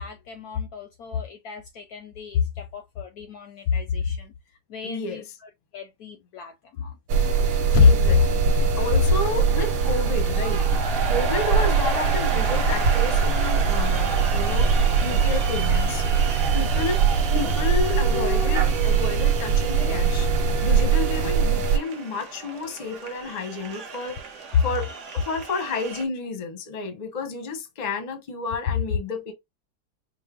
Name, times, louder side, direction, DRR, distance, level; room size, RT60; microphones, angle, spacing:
voice 1, 0.0-4.3 4.7-5.2 5.7-6.9 7.7-7.9, left 7 dB, 70° left, 0.9 m, -27 dB
voice 2, 4.8-5.3 7.8-10.6 11.1-16.1 16.5-17.1 17.3-24.2 24.6-29.3, left 3 dB, 40° left, 0.6 m, -31 dB
sound 1, 7.1-21.8, right 5 dB, 80° right, 1.4 m, -22 dB
sound 2, 8.4-26.0, right 4 dB, 60° right, 0.8 m, -34 dB
Dog, 13.8-14.0 14.3-14.4 14.6-15.3 16.0-16.2 16.5-16.6 16.8-16.9 17.0-20.0, left 7 dB, 90° left, 1.5 m, -35 dB
5.3 x 2.0 x 3.5 m
omnidirectional pair, 2.1 m